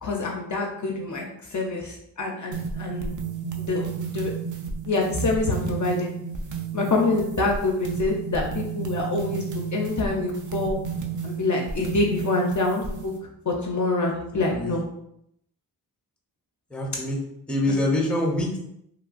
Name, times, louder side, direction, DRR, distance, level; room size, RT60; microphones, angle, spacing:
voice 1, 0.0-3.2 3.6-4.3 4.8-6.1 6.7-10.8 11.2-13.1 13.5-14.8, left 2 dB, 50° left, 0 dB, 0.4 m, -26 dB
sound 1, 2.5-13.2, right 5 dB, 50° right, 0.4 m, -32 dB
voice 2, 16.7-17.2 17.5-18.6, left 1 dB, 5° left, -1 dB, 0.6 m, -25 dB
3.0 x 2.2 x 2.4 m, 0.76 s
wide cardioid pair, 100°, 39 cm